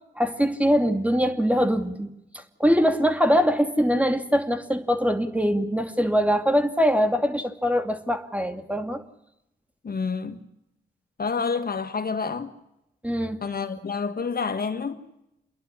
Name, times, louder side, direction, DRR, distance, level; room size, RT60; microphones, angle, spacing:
voice 1, 0.2-9.0 13.0-13.4, equal, 5° right, 2.5 m, -23 dB
voice 2, 9.8-10.4 11.2-12.5 13.4-15.0, left 5 dB, 55° left, 1.6 m, -28 dB
28.5 x 11.0 x 9.9 m
cardioid pair, 55°, 19 cm